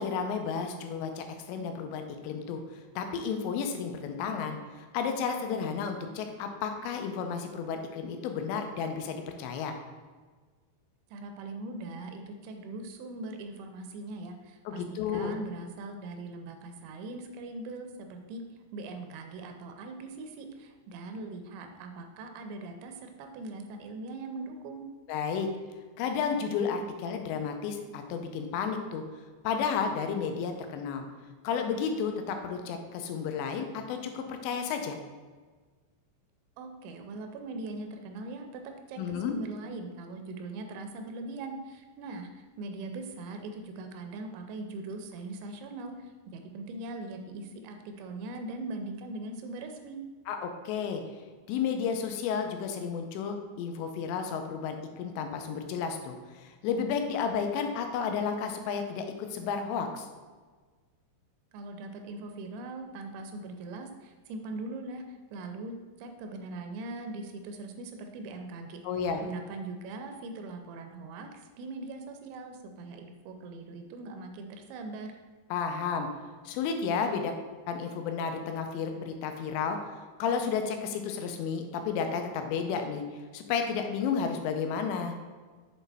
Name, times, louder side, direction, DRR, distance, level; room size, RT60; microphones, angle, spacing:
voice 1, 0.0-2.6 3.0-9.7 14.7-15.3 25.1-25.5 26.0-29.0 29.4-31.0 31.4-35.0 39.0-39.4 50.3-51.0 51.5-59.1 59.3-60.1 68.8-69.2 75.5-76.1 76.5-77.3 77.7-79.8 80.2-83.0 83.3-85.2, left 6 dB, 80° left, 5 dB, 2.8 m, -32 dB
voice 2, 11.1-18.4 18.7-24.8 36.6-50.0 61.5-68.8 69.2-75.1, right 2 dB, 85° right, 5 dB, 2.8 m, -41 dB
7.2 x 4.3 x 3.3 m, 1.4 s
omnidirectional pair, 5.2 m